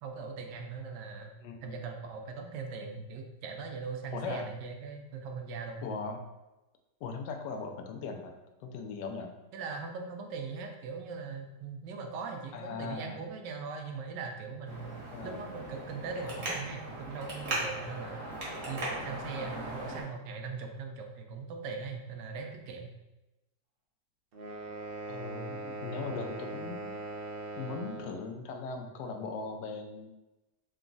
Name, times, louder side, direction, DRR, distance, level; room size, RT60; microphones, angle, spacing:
voice 1, 0.0-1.3 1.6-5.8 9.5-14.9 15.2-18.3 18.7-22.9, right 4 dB, 85° right, 3 dB, 1.2 m, -40 dB
voice 2, 1.4-1.8 4.1-4.6 5.8-6.2 7.0-9.3 12.5-13.2 15.1-15.4 25.1-26.9 27.6-30.1, left 4 dB, 85° left, 4 dB, 1.2 m, -39 dB
Traffic noise roadway noise, 14.6-20.0, right 1 dB, 45° right, 1.1 m, -38 dB
sound 1, 24.3-28.2, right 2 dB, 60° right, 0.6 m, -40 dB
3.9 x 2.3 x 3.8 m, 1.0 s
omnidirectional pair, 1.9 m